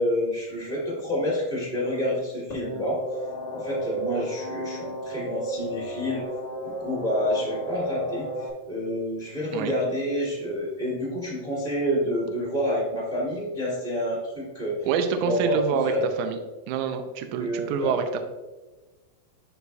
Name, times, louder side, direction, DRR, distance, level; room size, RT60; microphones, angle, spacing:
voice 1, 0.0-3.0 3.5-6.2 6.6-14.7 15.2-15.6 15.9-16.0 17.4-17.9, equal, 30° right, -6 dB, 1.1 m, -28 dB
warble bassish, 2.5-8.5, right 1 dB, 75° left, 0.5 m, -33 dB
voice 2, 14.8-15.9 16.2-16.4 16.7-18.2, right 6 dB, 85° right, 6 dB, 1.7 m, -26 dB
12.0 x 4.1 x 2.3 m, 1.2 s
omnidirectional pair, 4.1 m